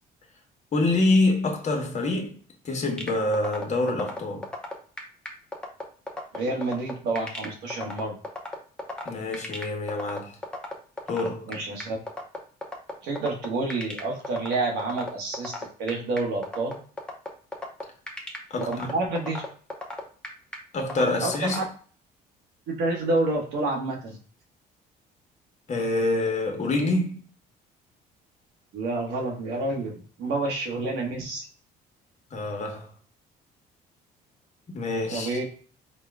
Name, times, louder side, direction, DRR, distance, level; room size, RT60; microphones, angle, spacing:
voice 1, 0.7-2.3 2.6-4.4 9.0-10.4 11.1-11.5 18.5-18.9 20.7-21.6 25.7-27.2 32.3-32.9 34.7-35.4, left 2 dB, 45° left, 1.0 m, -26 dB
sound 1, 3.0-21.6, left 2 dB, 5° left, 0.8 m, -34 dB
voice 2, 6.3-8.2 11.5-12.0 13.0-16.7 18.6-19.4 21.2-21.6 22.7-24.2 28.7-31.5 35.1-35.4, right 2 dB, 85° right, 1.1 m, -29 dB
4.4 x 2.2 x 3.5 m
cardioid pair, 110°, 17 cm